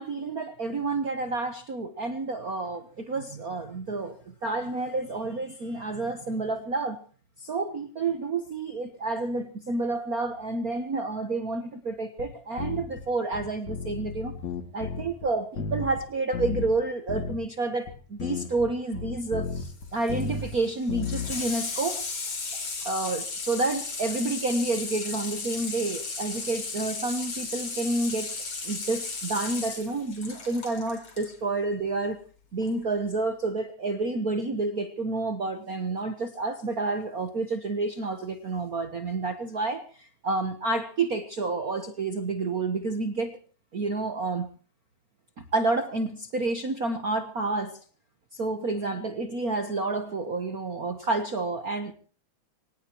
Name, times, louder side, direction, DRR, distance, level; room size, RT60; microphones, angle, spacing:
voice 1, 0.0-7.0 7.4-14.4 14.7-22.0 22.8-28.3 28.6-32.2 32.5-43.4 43.7-44.5 45.5-47.8 48.3-51.9, right 3 dB, 60° right, 8 dB, 0.9 m, -29 dB
sound 1, 12.2-12.3 12.6-13.0 13.3-15.3 15.6-16.0 16.3-16.8 17.1-17.4 17.9-18.0 18.2-20.6 20.9-21.4, left 5 dB, 65° left, 3.4 m, -33 dB
Water tap faucet / Sink (filling or washing), 19.5-31.3 32.6-32.7, left 4 dB, 50° left, 4.7 m, -35 dB
24.5 x 18.5 x 3.0 m, 0.41 s
omnidirectional pair, 3.3 m